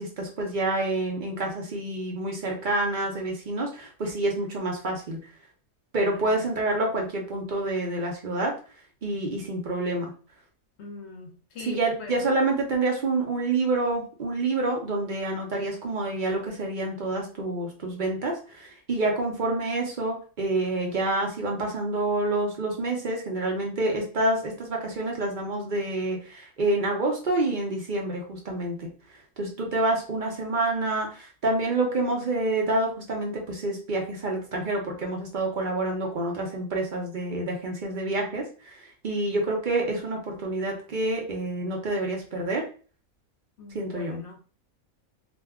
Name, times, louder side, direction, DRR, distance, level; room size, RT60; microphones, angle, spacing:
voice 1, 0.0-5.2 5.9-8.5 9.0-10.1 11.6-28.9 29.4-42.6 43.7-44.2, right 2 dB, 50° right, 0.6 m, -28 dB
voice 2, 6.0-6.3 10.8-12.3 43.6-44.4, left 3 dB, 60° left, 0.9 m, -42 dB
2.5 x 2.2 x 3.4 m
omnidirectional pair, 1.5 m